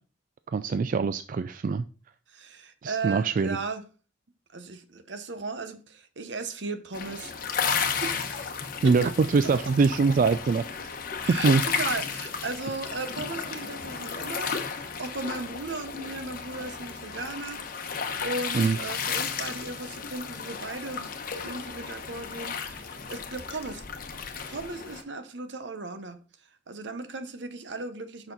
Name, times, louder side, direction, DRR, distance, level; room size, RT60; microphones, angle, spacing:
voice 1, 0.5-1.8 2.8-3.6 8.8-10.6 11.3-11.6 18.5-18.8, right 4 dB, 45° right, 0.3 m, -23 dB
voice 2, 2.3-3.8 4.5-7.3 8.0-8.5 8.8-8.9 11.2-21.1 21.4-23.8 24.5-26.2 26.7-28.3, right 3 dB, 75° right, 0.9 m, -36 dB
sound 1, 6.9-25.0, left 6 dB, 50° left, 0.9 m, -33 dB
6.9 x 5.8 x 4.0 m
head